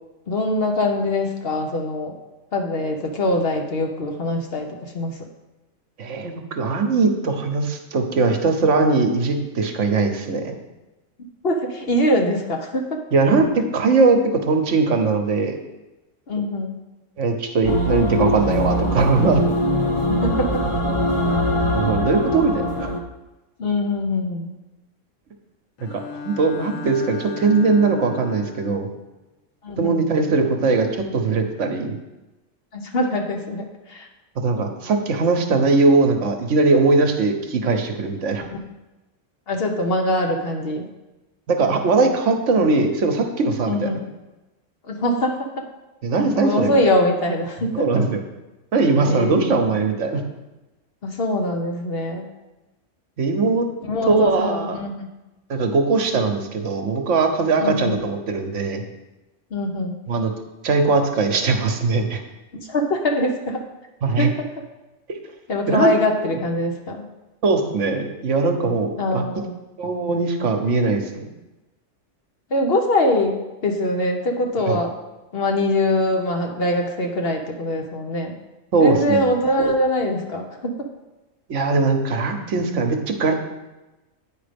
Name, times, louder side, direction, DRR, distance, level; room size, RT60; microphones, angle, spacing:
voice 1, 0.3-2.1 2.5-5.2 11.4-13.0 16.3-16.8 20.1-20.6 23.6-24.5 29.6-30.0 32.7-34.1 38.5-38.6 39.5-40.9 43.7-44.0 44.9-45.5 46.1-47.9 49.1-49.7 51.0-52.3 53.9-55.1 57.6-58.0 59.5-60.0 62.5-63.6 64.2-64.3 65.5-67.1 69.0-69.5 72.5-74.9 75.3-78.4 78.8-80.7, left 1 dB, 55° left, 3 dB, 1.0 m, -23 dB
voice 2, 6.0-10.5 13.1-15.6 17.2-19.4 21.7-22.9 26.2-28.9 29.8-32.0 34.4-38.4 41.5-43.9 46.0-46.8 47.7-48.2 48.7-50.2 53.2-53.7 54.1-54.8 55.5-58.8 60.1-60.3 60.6-62.2 64.0-64.3 65.7-65.9 67.4-69.2 69.8-71.2 74.7-74.8 78.7-79.3 81.5-83.3, right 3 dB, 70° right, 5 dB, 1.2 m, -20 dB
sound 1, 17.6-23.0, equal, 35° left, 0.6 m, -22 dB
Bowed string instrument, 25.8-28.9, left 4 dB, 90° left, 1.0 m, -35 dB
8.8 x 5.1 x 5.1 m, 1.1 s
omnidirectional pair, 1.3 m